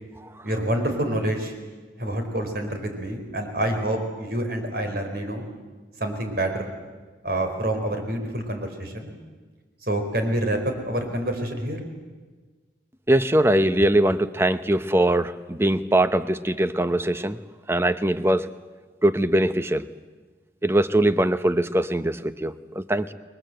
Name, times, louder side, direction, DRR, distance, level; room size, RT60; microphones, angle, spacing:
voice 1, 0.4-1.5 2.0-5.5 6.0-6.7 7.2-9.1 9.8-11.8, right 1 dB, 55° right, 5 dB, 4.5 m, -27 dB
voice 2, 13.1-17.4 17.7-18.5 19.0-19.8 20.6-23.1, right 1 dB, 15° right, 12 dB, 0.8 m, -21 dB
29.5 x 22.0 x 7.8 m, 1.4 s
head